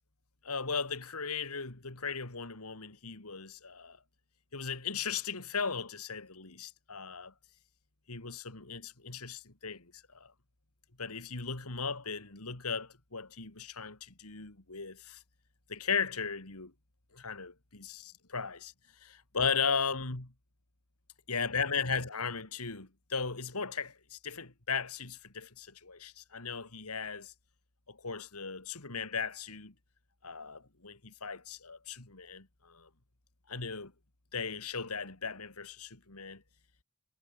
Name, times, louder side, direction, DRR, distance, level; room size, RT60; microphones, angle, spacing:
voice 1, 0.4-4.0 4.5-7.3 8.1-10.3 11.0-15.2 15.7-16.7 17.1-18.7 19.0-20.3 21.3-27.3 27.9-29.7 30.2-32.9 33.5-33.9 34.3-36.4, left 5 dB, 85° left, 2.8 m, -37 dB
head